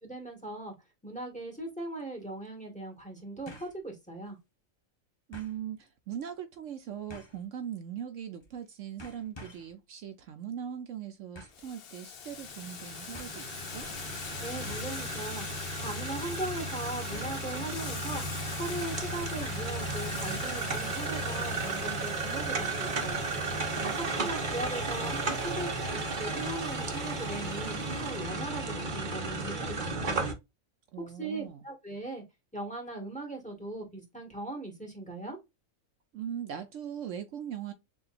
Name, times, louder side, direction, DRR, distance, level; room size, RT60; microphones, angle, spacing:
voice 1, 0.0-0.7 1.0-4.4 14.4-18.2 18.6-23.3 24.2-30.3 31.0-32.2 32.5-35.4, right 2 dB, 5° left, 1.7 m, -39 dB
sound 1, 1.5-1.6 3.5-3.8 4.2-4.3 5.3-5.6 7.1-7.4 8.4-8.6 9.0-9.7 11.3-11.7 12.6-12.7 13.1-13.4 14.7-15.0 15.5-15.8 16.0-16.1 17.1-17.5 18.1-18.5 19.4-19.8 20.1-20.2, left 1 dB, 20° left, 1.0 m, -48 dB
voice 2, 5.3-13.9 23.8-23.9 24.2-24.5 30.9-31.6 36.1-37.7, right 9 dB, 70° right, 1.0 m, -40 dB
Boiling, 11.5-28.3, left 8 dB, 55° left, 0.8 m, -44 dB
sound 2, 12.3-30.3, right 3 dB, 40° right, 1.0 m, -34 dB
6.7 x 2.7 x 2.5 m
omnidirectional pair, 1.4 m